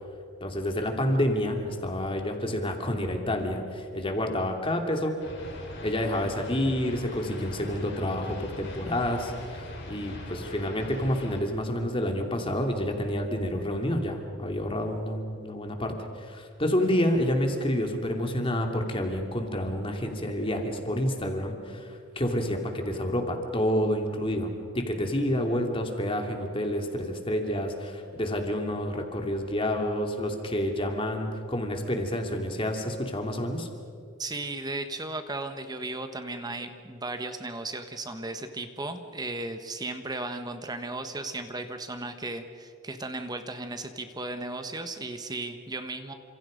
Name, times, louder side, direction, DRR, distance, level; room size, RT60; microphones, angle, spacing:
voice 1, 0.4-5.2 5.8-33.7, left 1 dB, 25° left, 3 dB, 2.7 m, -29 dB
sound 1, 5.2-11.4, left 1 dB, 55° left, 5.3 m, -41 dB
voice 2, 34.2-46.1, right 2 dB, 20° right, 7 dB, 1.3 m, -35 dB
29.5 x 26.5 x 5.2 m, 2.5 s
head